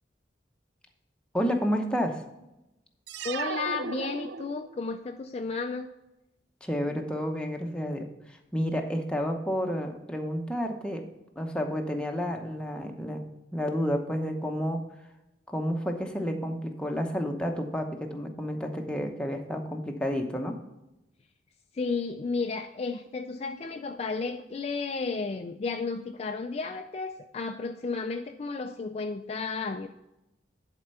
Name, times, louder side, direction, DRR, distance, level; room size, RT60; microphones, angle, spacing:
voice 1, 1.3-2.2 6.6-11.0 11.4-13.2 13.5-14.8 15.5-20.6, equal, 5° left, 2 dB, 0.8 m, -30 dB
sound 1, 3.1-4.9, right 6 dB, 65° right, 0.4 m, -36 dB
voice 2, 3.2-5.9 21.7-29.9, left 4 dB, 35° left, 6 dB, 0.3 m, -33 dB
10.5 x 4.5 x 5.5 m, 0.93 s
head